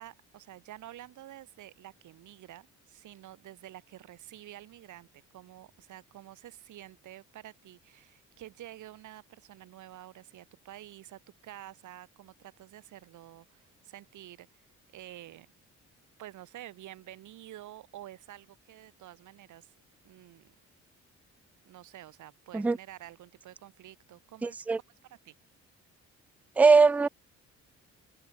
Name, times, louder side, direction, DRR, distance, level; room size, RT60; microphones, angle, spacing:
voice 1, 0.0-14.6 14.9-15.5 16.2-19.7 20.0-20.5 21.7-24.6 25.1-25.3, right 14 dB, 75° right, 1.8 m, -49 dB
voice 2, 24.4-24.8 26.6-27.1, right 4 dB, 5° right, 0.3 m, -21 dB
cardioid pair, 90°, 30 cm